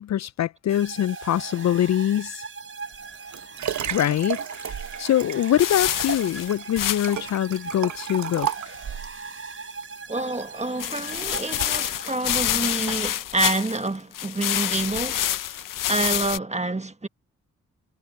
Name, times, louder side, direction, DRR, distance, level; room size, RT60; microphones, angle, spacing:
voice 1, 0.0-2.4 3.8-8.7, left 11 dB, 60° left, 0.4 m, -24 dB
sound 1, 0.7-12.5, right 4 dB, 40° right, 4.2 m, -39 dB
Liquid, 2.9-9.2 9.8-9.9, right 10 dB, 65° right, 1.0 m, -33 dB
sound 2, 5.6-7.3 7.5-7.6 8.0-8.1 8.4-8.5 10.8-13.9 14.1-16.4, left 12 dB, 85° left, 0.9 m, -27 dB
voice 2, 10.1-17.1, right 2 dB, 20° right, 1.6 m, -28 dB
supercardioid pair, 45°, 31 cm